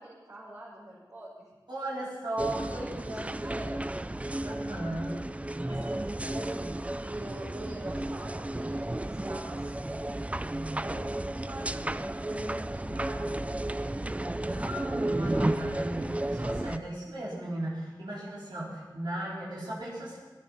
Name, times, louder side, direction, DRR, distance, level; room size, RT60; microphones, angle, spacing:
voice 1, 0.0-1.5 2.5-3.9 5.5-10.0 10.8-13.5, right 1 dB, 50° right, -9 dB, 5.8 m, -44 dB
voice 2, 1.7-3.2 4.4-5.2 5.7-6.0 6.3-6.5 13.8-20.2, right 1 dB, 90° right, -7 dB, 4.3 m, -37 dB
sound 1, 2.4-16.8, right 1 dB, 15° right, 0.4 m, -33 dB
17.5 x 10.5 x 5.7 m, 1.2 s
wide cardioid pair, 65°, 8 cm